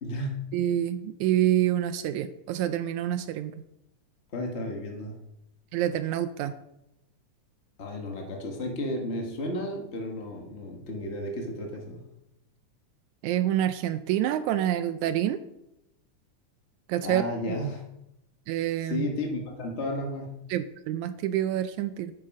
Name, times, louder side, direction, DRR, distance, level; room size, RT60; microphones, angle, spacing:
voice 1, 0.0-0.5 4.3-5.2 7.8-12.0 17.0-17.8 18.8-20.4, left 1 dB, 55° left, 1 dB, 0.7 m, -33 dB
voice 2, 0.5-3.6 5.7-6.5 13.2-15.4 16.9-17.2 18.5-19.1 20.5-22.1, right 12 dB, 80° right, 12 dB, 1.8 m, -27 dB
9.7 x 8.9 x 5.3 m, 0.87 s
omnidirectional pair, 3.7 m